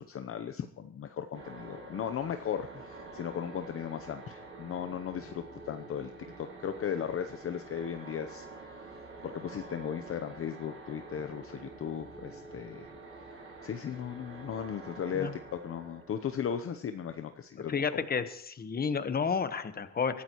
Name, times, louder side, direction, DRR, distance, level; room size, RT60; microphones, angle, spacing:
voice 1, 0.0-6.1 6.4-8.5 9.2-13.3 13.6-18.0, left 8 dB, 45° left, 8 dB, 0.8 m, -37 dB
sound 1, 1.3-17.3, right 3 dB, 45° right, 7.6 m, -48 dB
voice 2, 17.7-20.2, left 6 dB, 30° left, 10 dB, 1.2 m, -31 dB
23.0 x 14.0 x 3.1 m, 0.64 s
cardioid pair, 110°, 30 cm